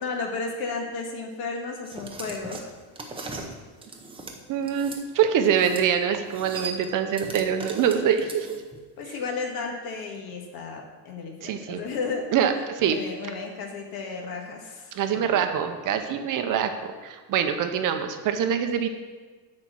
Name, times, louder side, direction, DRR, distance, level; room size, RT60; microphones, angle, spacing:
voice 1, 0.0-2.7 9.0-12.3 12.8-15.4, left 4 dB, 60° left, 2 dB, 1.8 m, -33 dB
sound 1, 1.8-5.0 5.4-5.9 6.1-8.8, right 3 dB, 10° right, 0.7 m, -38 dB
voice 2, 4.5-8.5 11.4-11.8 12.3-13.0 14.9-18.9, right 8 dB, 45° right, 7 dB, 0.8 m, -24 dB
10.5 x 4.4 x 7.5 m, 1.4 s
cardioid pair, 170°, 43 cm